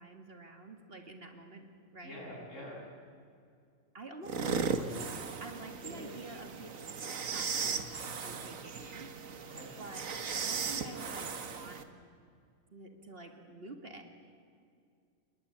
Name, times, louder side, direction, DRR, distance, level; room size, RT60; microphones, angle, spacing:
voice 1, 0.0-2.2 3.9-5.1 5.4-9.1 9.8-10.1 10.4-11.9 12.7-14.0, right 2 dB, 45° right, 4 dB, 2.3 m, -48 dB
voice 2, 2.0-2.8 5.8-6.2 9.5-9.7, left 1 dB, 60° left, -3 dB, 8.4 m, -46 dB
sound 1, 4.2-11.8, right 5 dB, 70° right, 1.8 m, -37 dB
29.0 x 21.0 x 8.8 m, 2.3 s
omnidirectional pair, 1.4 m